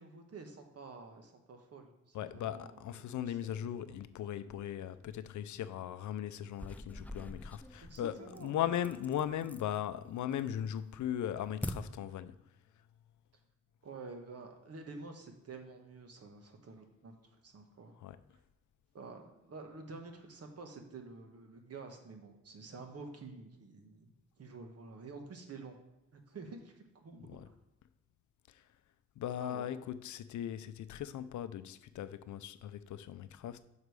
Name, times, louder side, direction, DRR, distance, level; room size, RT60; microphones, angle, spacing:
voice 1, 0.0-3.1 3.6-4.0 7.8-8.5 13.8-17.1 17.4-17.9 18.9-24.1 24.4-25.8 26.1-27.3 29.4-29.7, right 3 dB, 55° right, 1.3 m, -49 dB
voice 2, 2.1-12.4 18.0-18.2 27.2-27.5 28.5-28.6 29.2-33.6, left 10 dB, 75° left, 0.5 m, -38 dB
sound 1, 6.5-9.8 10.2-10.7 11.0-11.7, left 1 dB, 5° left, 0.4 m, -44 dB
6.7 x 4.8 x 4.8 m
cardioid pair, 80°, 30 cm